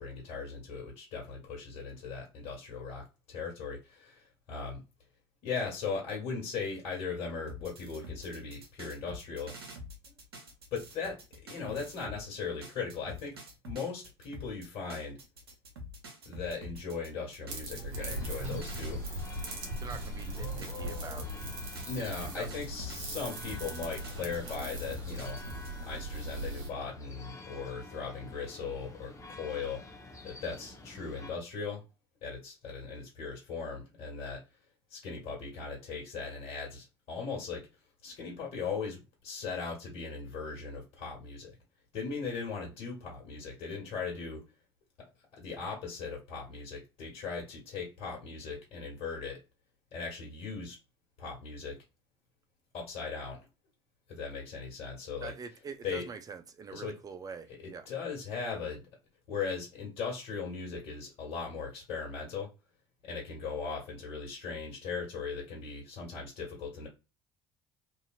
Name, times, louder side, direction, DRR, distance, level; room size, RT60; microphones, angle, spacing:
voice 1, 0.0-4.8 5.4-9.6 10.7-11.2 11.4-13.4 13.6-15.2 16.2-19.0 21.9-25.4 25.8-29.8 30.2-31.8 32.2-34.4 34.9-37.7 38.0-41.6 41.9-44.4 45.3-49.4 49.9-50.8 51.2-51.8 52.7-53.5 54.1-55.3 55.8-56.1 56.7-56.9 57.6-58.8 59.3-62.5 63.0-66.9, left 5 dB, 60° left, 1.5 m, -38 dB
sound 1, 7.5-12.2 12.6-21.4 21.8-25.7, left 1 dB, 85° right, 0.7 m, -47 dB
sound 2, 17.5-26.7, right 1 dB, 65° right, 1.2 m, -39 dB
sound 3, 17.9-31.3, left 2 dB, 25° left, 0.9 m, -49 dB
voice 2, 19.8-21.3 22.3-22.5 55.2-57.9, right 5 dB, 30° right, 0.6 m, -44 dB
2.8 x 2.7 x 2.4 m
hypercardioid pair, 60°, 12 cm